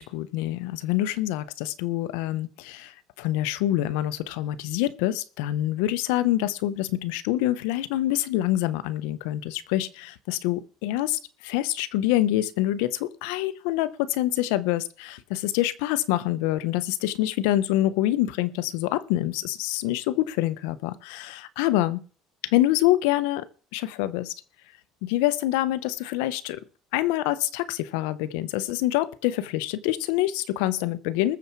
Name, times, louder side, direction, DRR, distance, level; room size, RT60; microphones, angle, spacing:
voice 1, 0.0-22.0 22.4-23.5 23.7-24.3 25.0-26.6 26.9-31.4, left 15 dB, 85° left, 0.8 m, -26 dB
20.5 x 7.0 x 4.6 m
supercardioid pair, 110°, 0 cm